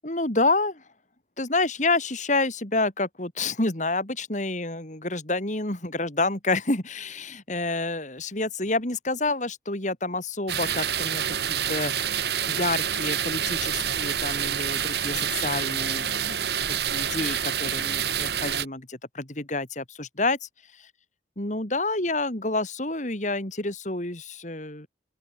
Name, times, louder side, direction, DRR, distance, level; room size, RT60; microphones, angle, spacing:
voice 1, 0.0-0.8 1.4-11.9 12.5-20.5 20.8-20.9 21.4-24.9, left 2 dB, 40° left, 3.2 m, -28 dB
sound 1, 10.5-18.6, right 9 dB, 60° right, 1.7 m, -27 dB
open air
head